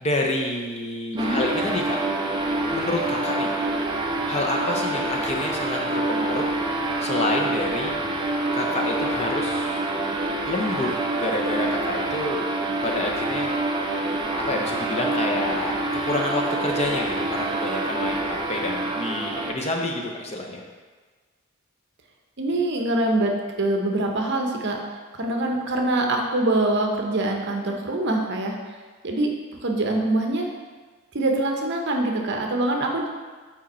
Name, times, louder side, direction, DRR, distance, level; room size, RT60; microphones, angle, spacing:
voice 1, 0.0-2.0 2.7-3.5 4.3-6.5 7.0-8.0 8.5-9.9 10.4-12.5 12.8-13.6 14.5-15.7 16.0-20.6, left 2 dB, 30° left, 0 dB, 0.7 m, -28 dB
sound 1, 1.2-19.5, right 2 dB, 20° right, 0.5 m, -26 dB
voice 2, 22.4-24.8 25.2-28.5 29.0-29.3 29.6-30.5 31.1-33.1, right 2 dB, 55° right, 2 dB, 0.8 m, -24 dB
6.3 x 4.4 x 4.2 m, 1.4 s
head